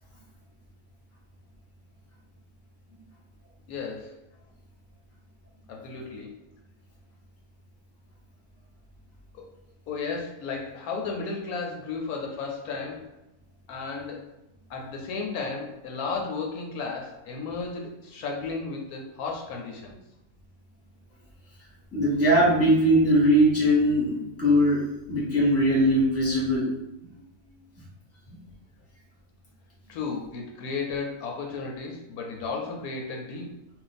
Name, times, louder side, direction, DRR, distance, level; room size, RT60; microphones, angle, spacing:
voice 1, 3.7-4.1 5.7-6.3 9.3-9.5 9.9-13.1 13.7-14.3 14.7-20.0 29.9-33.5, left 4 dB, 80° left, 0 dB, 1.0 m, -34 dB
voice 2, 21.9-26.7, equal, 10° left, -6 dB, 1.0 m, -21 dB
2.5 x 2.3 x 3.9 m, 0.91 s
omnidirectional pair, 1.6 m